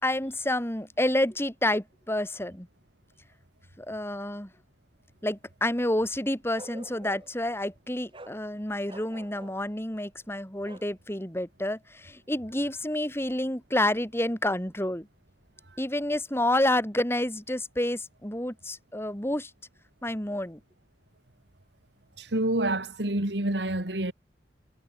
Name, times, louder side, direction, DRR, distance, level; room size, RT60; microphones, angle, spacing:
voice 1, 0.0-2.7 3.8-4.5 5.2-15.1 15.8-19.5 20.0-20.6, left 1 dB, 15° left, 4.0 m, -29 dB
Bark, 6.5-7.4 8.1-8.4 8.8-9.6 10.6-10.9, right 1 dB, 30° right, 5.0 m, -46 dB
voice 2, 22.2-24.1, right 1 dB, 80° right, 2.8 m, -27 dB
head